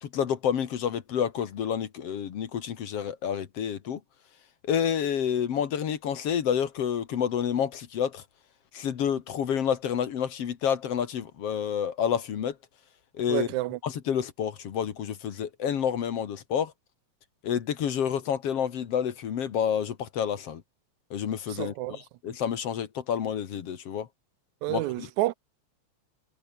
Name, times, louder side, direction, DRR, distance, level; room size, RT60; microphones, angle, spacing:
voice 1, 0.0-4.0 4.6-8.2 8.7-12.5 13.1-13.5 13.8-16.7 17.4-20.6 21.1-24.1 24.7-25.1, left 8 dB, 60° left, 2.5 m, -29 dB
voice 2, 13.3-13.8 21.5-22.0 22.3-22.4 24.6-25.3, right 18 dB, 85° right, 2.0 m, -29 dB
omnidirectional pair, 3.3 m